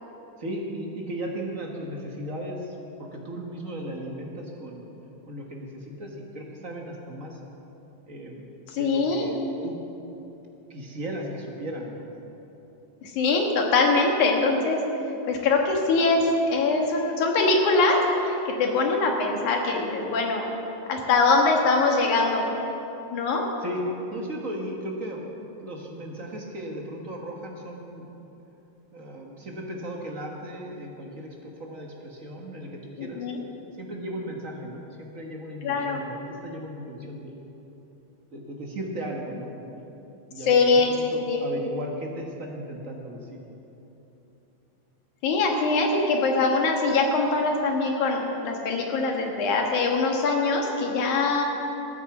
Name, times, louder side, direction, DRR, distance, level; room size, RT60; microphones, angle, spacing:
voice 1, 0.4-4.8 5.2-7.4 8.1-9.8 10.7-12.1 23.6-25.3 25.6-28.1 28.9-33.3 33.8-37.3 38.3-39.8 40.3-43.4, equal, 45° right, 0 dB, 1.1 m, -36 dB
voice 2, 8.7-9.3 13.0-14.8 15.3-20.5 20.9-22.5 23.1-23.5 33.0-33.4 35.6-36.0 40.5-41.4 45.2-51.4, left 3 dB, 85° left, 1 dB, 3.0 m, -23 dB
14.0 x 9.6 x 7.1 m, 3.0 s
omnidirectional pair, 3.4 m